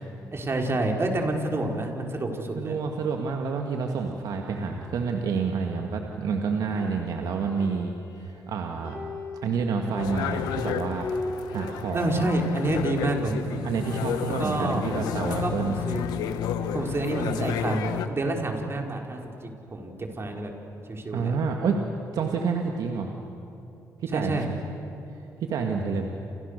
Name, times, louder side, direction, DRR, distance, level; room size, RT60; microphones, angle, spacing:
voice 1, 0.3-2.8 11.9-13.3 14.4-14.8 15.4-16.2 16.7-20.5 20.9-21.3 24.1-24.5, right 2 dB, 40° right, 2 dB, 5.0 m, -28 dB
voice 2, 2.5-9.0 9.4-11.1 11.5-12.1 13.6-15.8 21.1-21.8 22.1-23.1 24.0-24.6 25.4-26.1, right 5 dB, 75° right, 2 dB, 2.1 m, -28 dB
sound 1, 6.7-8.5 8.8-12.1 12.4-12.5 12.7-13.3 13.8-15.8 16.2-17.9, left 2 dB, 65° left, 7.5 m, -40 dB
sound 2, 10.0-18.1, left 9 dB, 90° left, 1.3 m, -31 dB
30.0 x 28.5 x 6.8 m, 2.9 s
supercardioid pair, 65°, 7 cm